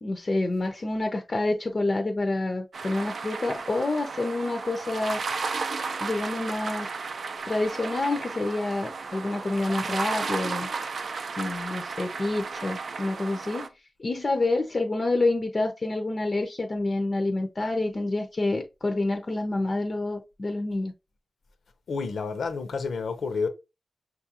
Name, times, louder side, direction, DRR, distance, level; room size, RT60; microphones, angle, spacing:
voice 1, 0.0-5.2 6.0-6.9 7.5-10.7 11.4-13.7 14.0-20.9, left 2 dB, 40° left, 0.5 m, -28 dB
sound 1, 2.7-13.7, right 4 dB, 60° right, 0.4 m, -34 dB
voice 2, 21.9-23.5, left 4 dB, 80° left, 0.7 m, -29 dB
5.9 x 2.4 x 2.8 m
wide cardioid pair, 105°, 0 cm